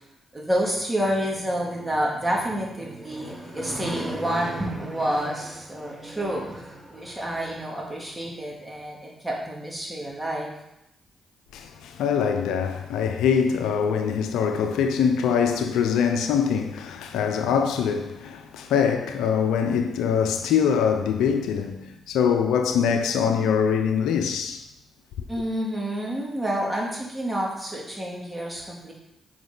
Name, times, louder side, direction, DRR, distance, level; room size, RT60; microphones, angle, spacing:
voice 1, 0.3-10.5 25.3-28.9, equal, 15° right, 3.1 m, -29 dB
voice 2, 11.5-24.6, left 7 dB, 80° left, 0.6 m, -23 dB
8.5 x 5.3 x 4.0 m
hypercardioid pair, 45°, 0 cm